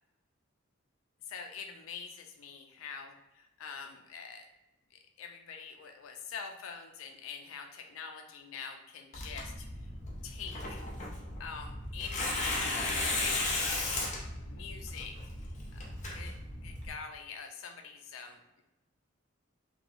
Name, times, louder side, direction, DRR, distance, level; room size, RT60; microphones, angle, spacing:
voice 1, 1.3-4.5 4.9-9.9 10.2-10.8 11.4-15.2 15.4-15.8 16.1-16.3 16.6-18.6, left 6 dB, 85° left, 4 dB, 0.4 m, -45 dB
Tearing, 9.1-16.9, left 2 dB, 35° left, 0.5 m, -35 dB
3.0 x 2.6 x 2.5 m, 0.98 s
head